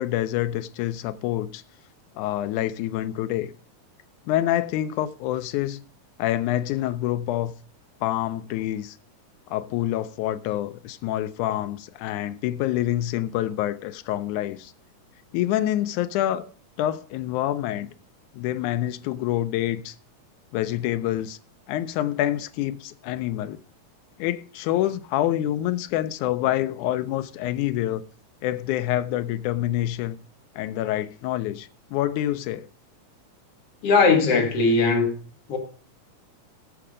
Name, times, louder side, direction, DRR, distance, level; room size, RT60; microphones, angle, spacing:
voice 1, 0.0-1.6 2.2-3.5 4.3-5.8 6.2-7.5 8.0-9.0 9.5-14.7 15.3-16.5 16.8-17.9 18.3-20.0 20.5-21.4 21.7-23.6 24.2-28.0 28.4-30.2 30.6-32.7, left 13 dB, 75° left, 1.9 m, -27 dB
voice 2, 33.8-35.1 35.5-35.6, left 4 dB, 50° left, 2.3 m, -19 dB
13.0 x 7.1 x 4.9 m
omnidirectional pair, 3.8 m